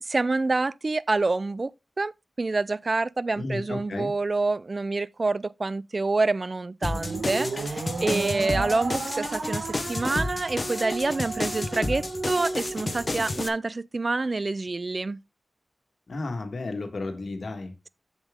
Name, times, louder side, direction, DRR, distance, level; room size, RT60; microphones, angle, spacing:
voice 1, 0.0-1.7 2.0-2.1 2.4-9.6 9.9-15.2, right 3 dB, 45° right, 0.4 m, -27 dB
voice 2, 3.4-4.1 16.1-17.7, left 2 dB, 70° left, 1.6 m, -33 dB
sound 1, 6.8-13.5, left 2 dB, 40° left, 1.0 m, -32 dB
sound 2, 6.9-13.5, right 3 dB, 80° right, 1.2 m, -34 dB
7.3 x 7.2 x 3.6 m
wide cardioid pair, 95°, 0 cm